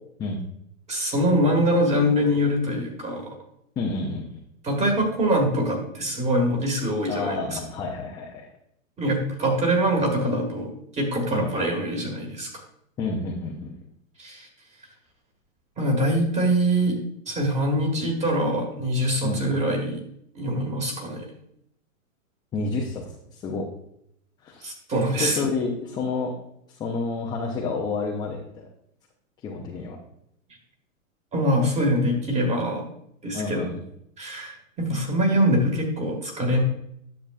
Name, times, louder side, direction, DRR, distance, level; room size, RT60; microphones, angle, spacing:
voice 1, 0.9-3.3 4.6-7.6 9.0-12.5 14.2-14.5 15.8-17.0 17.3-20.0 20.4-21.3 24.6-25.5 31.3-32.8 33.2-33.6 34.2-36.6, equal, 15° right, 2 dB, 1.8 m, -24 dB
voice 2, 3.8-4.4 7.1-8.5 11.3-11.5 13.0-13.7 19.2-19.4 22.5-23.7 24.4-24.6 25.2-26.3 26.7-28.6 29.4-30.0 33.3-33.8 34.9-35.0, left 3 dB, 10° left, -2 dB, 0.5 m, -29 dB
10.5 x 7.0 x 2.4 m, 0.73 s
hypercardioid pair, 140°, 41 cm